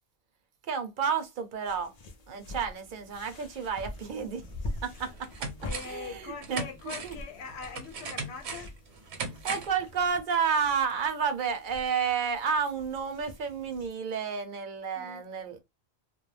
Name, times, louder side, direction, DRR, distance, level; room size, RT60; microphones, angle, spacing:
voice 1, 0.7-1.9 2.3-4.4 4.8-5.5 5.9-7.2 9.4-15.6, right 6 dB, 55° right, 0.7 m, -31 dB
sound 1, 1.6-13.9, left 2 dB, 50° left, 0.5 m, -45 dB
sound 2, 4.4-4.5 5.0-6.1 6.4-9.8 10.1-10.2, right 4 dB, 80° right, 1.0 m, -38 dB
voice 2, 5.6-8.7 15.0-15.2, left 6 dB, 80° left, 0.9 m, -42 dB
2.3 x 2.1 x 3.1 m
omnidirectional pair, 1.1 m